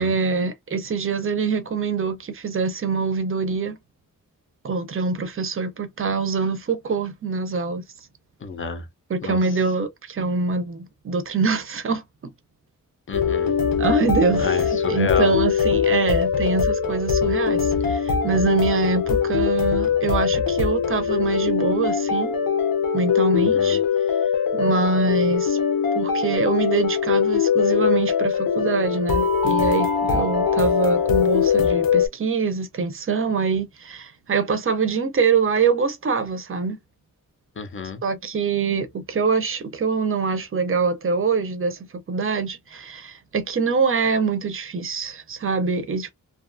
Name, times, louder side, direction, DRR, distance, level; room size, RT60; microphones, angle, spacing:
voice 1, 0.0-3.8 4.6-7.8 9.1-12.0 13.8-22.3 22.9-23.8 24.5-25.6 25.9-36.8 38.0-46.1, right 5 dB, 40° right, 0.5 m, -24 dB
voice 2, 8.4-8.9 9.2-9.4 13.1-13.5 14.4-15.3 23.5-23.8 37.6-38.0, left 5 dB, 40° left, 0.6 m, -29 dB
sound 1, 13.1-32.1, left 6 dB, 85° left, 0.8 m, -21 dB
2.6 x 2.3 x 2.5 m
wide cardioid pair, 145°, 33 cm